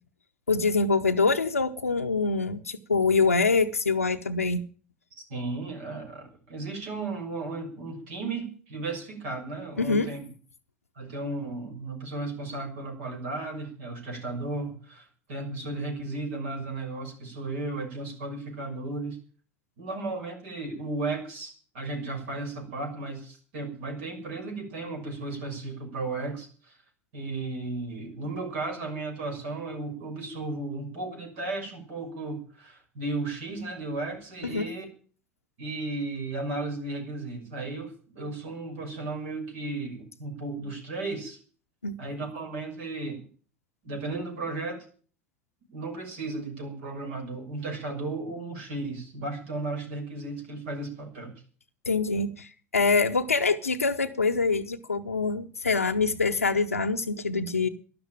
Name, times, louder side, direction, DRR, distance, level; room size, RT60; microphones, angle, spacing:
voice 1, 0.5-4.6 9.8-10.1 34.4-34.6 41.8-41.9 51.9-57.7, left 4 dB, 90° left, 6 dB, 0.8 m, -25 dB
voice 2, 5.2-10.2 10.9-19.2 19.8-26.8 27.1-34.9 35.6-41.4 42.0-43.2 43.8-44.8 45.7-51.3, right 2 dB, 65° right, 3 dB, 6.2 m, -35 dB
13.0 x 11.0 x 9.0 m, 0.43 s
figure-of-eight pair, 75°, 7 cm